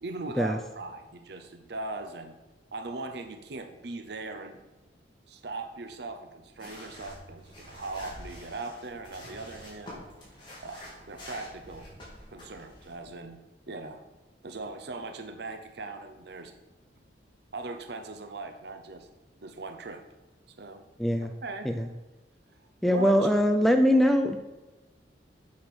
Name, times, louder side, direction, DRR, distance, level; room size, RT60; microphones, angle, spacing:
voice 1, 0.0-2.3 2.7-4.6 5.3-10.0 10.6-11.9 12.3-13.4 13.7-14.0 14.4-16.5 17.5-19.1 19.4-20.0 20.6-20.9 21.4-21.7 22.8-23.4, right 3 dB, 65° right, 7 dB, 0.8 m, -39 dB
sound 1, 6.6-13.2, left 1 dB, 25° left, 3.5 m, -47 dB
voice 2, 21.0-21.3 21.6-21.9 22.8-24.4, equal, ahead, 6 dB, 0.4 m, -22 dB
8.6 x 6.3 x 6.1 m, 1.2 s
head